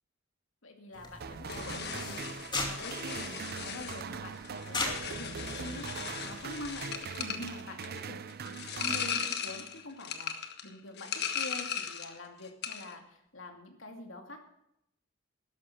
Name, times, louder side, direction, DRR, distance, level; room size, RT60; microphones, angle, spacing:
voice 1, 0.6-5.9 6.2-14.4, left 1 dB, 85° left, 3 dB, 2.5 m, -46 dB
sound 1, 0.9-7.0, left 3 dB, 25° left, 2.4 m, -41 dB
sound 2, 1.2-9.8, right 5 dB, 50° right, 0.5 m, -42 dB
sound 3, 1.5-12.2 12.4-12.9, left 7 dB, 60° left, 1.4 m, -38 dB
13.0 x 11.5 x 6.1 m, 0.80 s
head